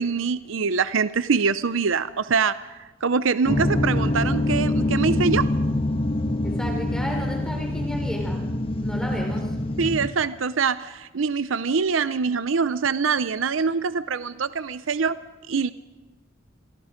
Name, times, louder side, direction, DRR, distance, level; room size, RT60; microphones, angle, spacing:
voice 1, 0.0-5.5 9.8-15.2 15.5-15.7, right 5 dB, 75° right, 14 dB, 0.6 m, -24 dB
sound 1, 3.4-10.1, left 1 dB, 30° left, 1.6 m, -25 dB
voice 2, 6.4-8.5 8.8-9.6, equal, 5° left, 2 dB, 4.2 m, -33 dB
27.5 x 23.0 x 5.2 m, 1.2 s
head